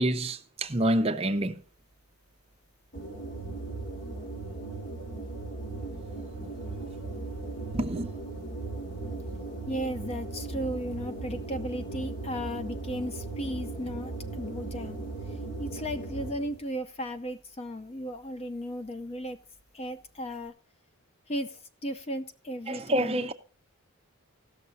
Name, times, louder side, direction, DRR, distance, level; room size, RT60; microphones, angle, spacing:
voice 1, 0.0-1.5 7.7-8.1 22.7-23.3, right 1 dB, 25° right, 0.6 m, -27 dB
sound 1, 2.9-16.6, right 3 dB, 55° left, 2.8 m, -37 dB
voice 2, 9.6-15.0 15.6-19.4 19.7-20.5 21.3-23.2, equal, 25° left, 0.5 m, -35 dB
16.5 x 6.5 x 4.0 m
head